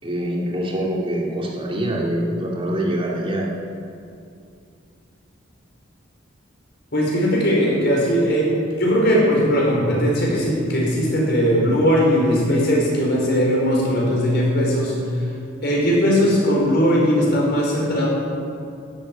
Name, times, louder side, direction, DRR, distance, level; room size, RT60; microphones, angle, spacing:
voice 1, 0.0-3.5, right 1 dB, 30° right, -2 dB, 2.7 m, -24 dB
voice 2, 6.9-15.0 15.6-18.1, equal, 55° left, -3 dB, 4.9 m, -19 dB
13.0 x 9.2 x 9.6 m, 2.5 s
head